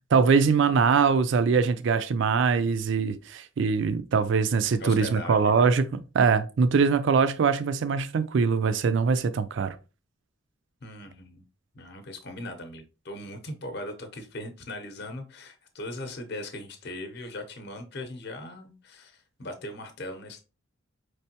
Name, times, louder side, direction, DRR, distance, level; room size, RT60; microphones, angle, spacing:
voice 1, 0.1-9.7, right 5 dB, 60° right, 0.4 m, -23 dB
voice 2, 4.8-5.8 10.8-11.4 11.7-20.4, left 1 dB, 50° left, 0.7 m, -39 dB
5.1 x 3.3 x 2.8 m
head